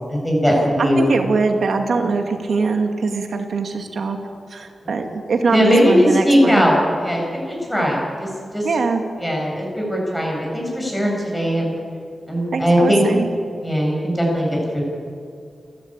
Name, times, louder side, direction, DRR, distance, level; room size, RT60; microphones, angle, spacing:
voice 1, 0.1-1.1 5.5-8.7 9.2-11.7 12.3-13.0 13.6-14.8, equal, 5° left, -2 dB, 7.1 m, -19 dB
voice 2, 0.8-4.2 4.5-6.7 8.6-9.0 12.5-13.3, right 4 dB, 75° right, 4 dB, 2.3 m, -22 dB
29.0 x 12.5 x 8.8 m, 2.4 s
wide cardioid pair, 115°, 0 cm